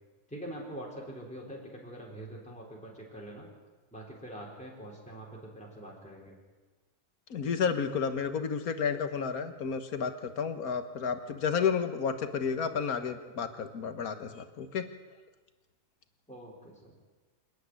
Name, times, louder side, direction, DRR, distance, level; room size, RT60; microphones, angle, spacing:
voice 1, 0.3-3.5 3.9-6.4 16.3-17.0, right 1 dB, 5° left, -4 dB, 4.4 m, -44 dB
voice 2, 7.3-14.8, left 6 dB, 65° left, 8 dB, 1.8 m, -31 dB
28.0 x 9.8 x 9.7 m, 1.3 s
omnidirectional pair, 1.7 m